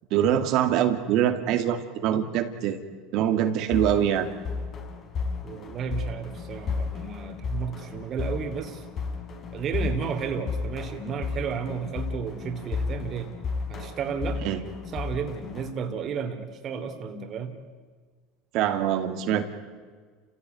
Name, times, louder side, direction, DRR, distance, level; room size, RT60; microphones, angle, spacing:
voice 1, 0.1-2.8 3.1-4.3 14.4-14.6 18.5-19.4, right 10 dB, 60° right, 7 dB, 2.2 m, -24 dB
sound 1, 3.7-15.7, left 4 dB, 40° left, 3.7 m, -33 dB
voice 2, 5.4-8.8 9.5-13.4 13.7-14.4 14.9-17.5, right 6 dB, 40° right, 5 dB, 2.9 m, -32 dB
29.5 x 16.5 x 9.3 m, 1.5 s
supercardioid pair, 120°, 0 cm